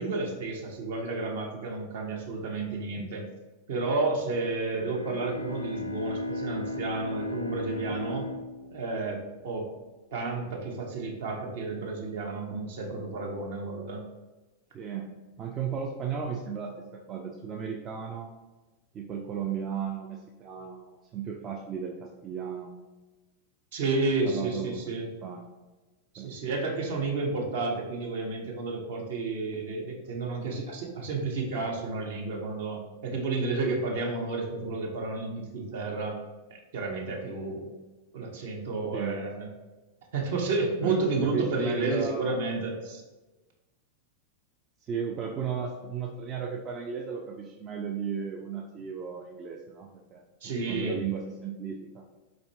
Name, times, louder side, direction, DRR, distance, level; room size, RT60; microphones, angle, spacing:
voice 1, 0.0-3.3 3.7-8.3 8.7-9.7 10.1-14.0 23.7-25.1 26.1-36.2 36.7-37.7 38.1-39.5 40.1-43.0 50.4-51.0, right 3 dB, 55° right, 0 dB, 0.8 m, -31 dB
Bowed string instrument, 4.7-9.6, left 2 dB, 85° left, 0.3 m, -36 dB
voice 2, 14.7-18.3 18.9-22.8 24.2-24.8 25.2-25.5 26.2-26.3 38.9-39.2 40.8-42.3 44.8-52.0, right 7 dB, 30° right, 0 dB, 0.4 m, -35 dB
4.2 x 2.5 x 3.3 m, 1.2 s
figure-of-eight pair, 90°, 0 cm